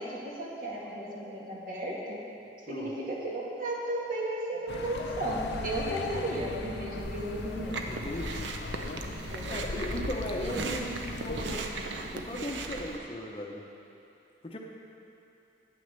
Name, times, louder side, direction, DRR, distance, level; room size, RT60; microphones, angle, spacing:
voice 1, 0.0-2.2 2.7-7.7 9.1-9.5, right 1 dB, 50° right, -5 dB, 2.0 m, -34 dB
Accelerating revving vroom, 4.7-11.6, left 3 dB, 75° left, 0.5 m, -39 dB
Chewing mastication, 7.0-13.0, right 3 dB, 90° right, 0.7 m, -38 dB
voice 2, 7.9-8.5 9.5-11.8 12.1-13.6 14.4-14.6, left 1 dB, 30° left, 0 dB, 0.8 m, -37 dB
9.1 x 6.5 x 6.7 m, 2.9 s
head